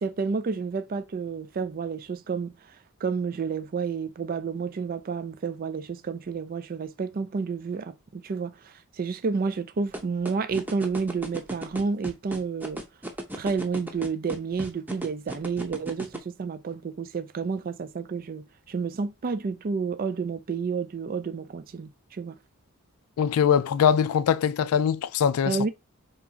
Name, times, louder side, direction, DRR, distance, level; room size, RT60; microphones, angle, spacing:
voice 1, 0.0-2.5 3.0-12.8 13.4-22.4 25.5-25.7, right 5 dB, 40° right, 0.4 m, -30 dB
sound 1, 9.9-16.2, right 1 dB, 10° right, 0.7 m, -34 dB
voice 2, 23.2-25.6, left 8 dB, 80° left, 0.3 m, -22 dB
3.6 x 2.9 x 4.8 m
head